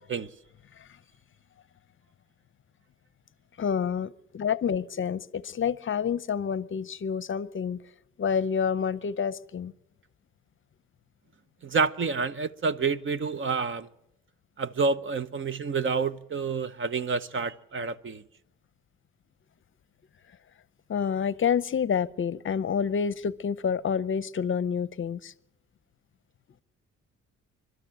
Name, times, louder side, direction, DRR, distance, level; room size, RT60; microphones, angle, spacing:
voice 1, 3.6-7.8 8.2-9.7 20.9-25.3, left 7 dB, 40° left, 0.7 m, -28 dB
voice 2, 11.6-13.9 14.6-18.2, right 4 dB, 40° right, 0.9 m, -28 dB
29.0 x 12.5 x 7.6 m
cardioid pair, 90°, 30 cm